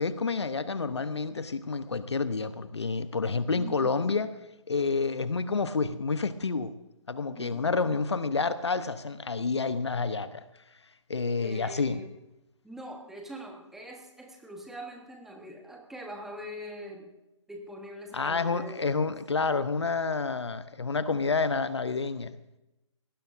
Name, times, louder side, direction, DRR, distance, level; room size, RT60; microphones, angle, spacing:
voice 1, 0.0-4.3 4.7-6.7 7.1-10.4 11.1-12.0 18.1-22.3, left 4 dB, 60° left, 13 dB, 0.9 m, -29 dB
voice 2, 3.5-4.2 7.3-7.7 11.4-12.1 12.6-17.1 17.5-19.1, equal, ahead, 2 dB, 1.2 m, -43 dB
20.5 x 18.5 x 2.6 m, 0.94 s
figure-of-eight pair, 140°, 16 cm